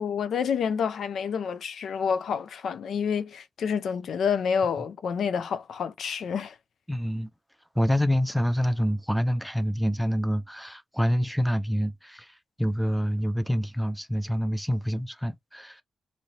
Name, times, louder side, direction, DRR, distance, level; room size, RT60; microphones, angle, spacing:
voice 1, 0.0-6.6, left 6 dB, 70° left, 0.4 m, -28 dB
voice 2, 6.9-7.3 7.8-15.8, equal, ahead, 0.3 m, -27 dB
3.1 x 2.6 x 2.8 m
wide cardioid pair, 170°, 0 cm